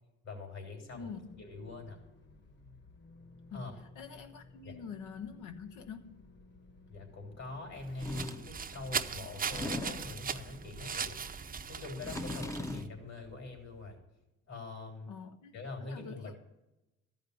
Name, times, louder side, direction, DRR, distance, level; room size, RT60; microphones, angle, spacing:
voice 1, 0.2-1.1 1.4-2.0 3.5-3.7 4.6-4.8 6.9-11.1 11.7-14.0 14.5-15.1 15.5-16.3, left 3 dB, 60° left, 2 dB, 3.7 m, -43 dB
voice 2, 0.9-1.4 3.5-6.2 15.1-16.4, left 6 dB, 80° left, 6 dB, 1.0 m, -46 dB
sound 1, 0.9-14.3, left 3 dB, 35° left, 1.4 m, -57 dB
sound 2, 7.7-12.9, right 6 dB, 30° right, 0.6 m, -39 dB
sound 3, 8.0-8.5 9.3-10.2 11.8-13.0, left 2 dB, 10° left, 0.6 m, -39 dB
13.5 x 5.3 x 8.3 m, 0.97 s
cardioid pair, 90°, 30 cm